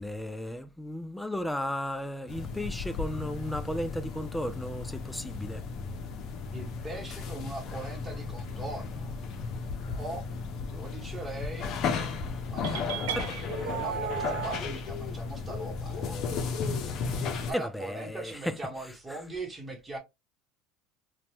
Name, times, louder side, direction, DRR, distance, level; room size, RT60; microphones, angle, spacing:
voice 1, 0.0-5.6 13.1-13.4 17.5-18.5, equal, 5° left, 0.4 m, -34 dB
sound 1, 2.3-17.5, left 5 dB, 55° left, 0.6 m, -35 dB
voice 2, 6.5-9.2 9.9-10.2 10.7-11.7 12.5-16.2 17.4-20.0, right 2 dB, 20° right, 1.2 m, -40 dB
sound 2, 12.6-14.6, right 10 dB, 85° right, 0.4 m, -34 dB
2.9 x 2.2 x 2.8 m
supercardioid pair, 90°, 0 cm